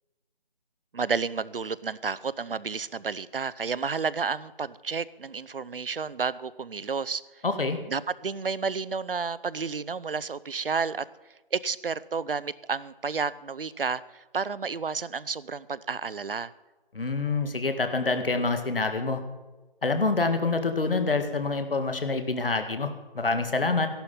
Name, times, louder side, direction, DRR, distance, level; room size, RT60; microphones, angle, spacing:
voice 1, 0.9-7.2 7.9-11.0 11.5-16.5, right 5 dB, 65° right, 18 dB, 0.7 m, -31 dB
voice 2, 7.4-7.8 16.9-19.2 19.8-23.9, left 3 dB, 65° left, 7 dB, 2.0 m, -26 dB
15.5 x 11.5 x 5.6 m, 1.2 s
figure-of-eight pair, 170°, 30 cm